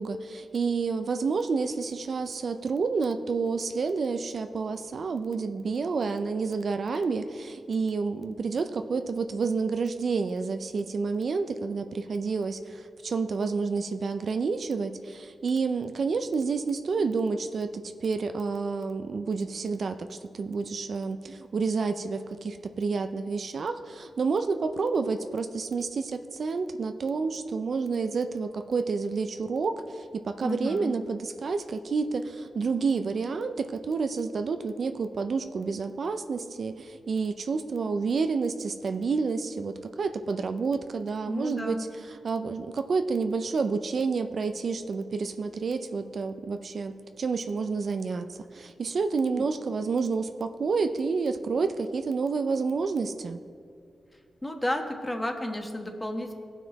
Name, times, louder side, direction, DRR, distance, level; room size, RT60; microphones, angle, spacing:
voice 1, 0.0-53.4, right 4 dB, 60° right, 8 dB, 0.5 m, -29 dB
voice 2, 30.4-31.0 41.3-41.9 54.4-56.3, left 1 dB, 15° left, 4 dB, 1.2 m, -32 dB
17.5 x 6.0 x 4.1 m, 2.3 s
cardioid pair, 85°, 0 cm